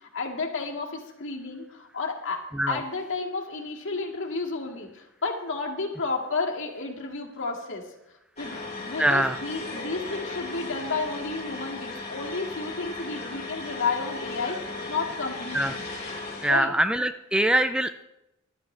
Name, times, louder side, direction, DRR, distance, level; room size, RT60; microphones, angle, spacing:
voice 1, 0.0-7.9 8.4-15.9 16.5-16.7, left 4 dB, 60° left, 0 dB, 2.1 m, -32 dB
sound 1, 8.4-16.6, left 3 dB, 35° left, 3.3 m, -36 dB
voice 2, 9.0-9.4 15.5-15.7 16.4-18.0, right 1 dB, 5° right, 9 dB, 0.3 m, -23 dB
16.0 x 12.0 x 3.3 m, 0.90 s
head